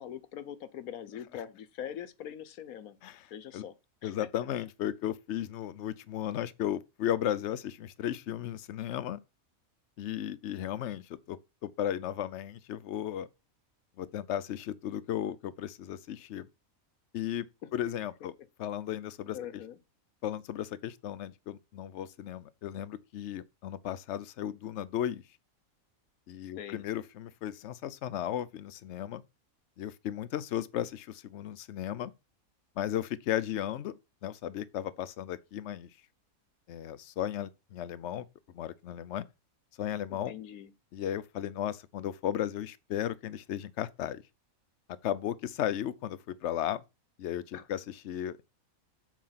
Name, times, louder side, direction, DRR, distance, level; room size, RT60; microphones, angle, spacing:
voice 1, 0.0-3.0 3.3-4.3 17.6-17.7 19.3-19.8 26.6-26.8 40.1-40.7 47.5-47.7, left 9 dB, 80° left, 1.2 m, -42 dB
voice 2, 4.0-9.2 10.0-13.3 14.0-16.5 17.1-17.5 17.7-18.3 18.6-19.4 20.2-25.2 26.3-29.2 29.8-32.1 32.8-35.9 36.7-39.2 39.8-40.4 40.9-44.2 45.0-46.8 47.2-48.4, left 11 dB, 60° left, 0.9 m, -35 dB
7.5 x 5.0 x 5.6 m
omnidirectional pair, 1.5 m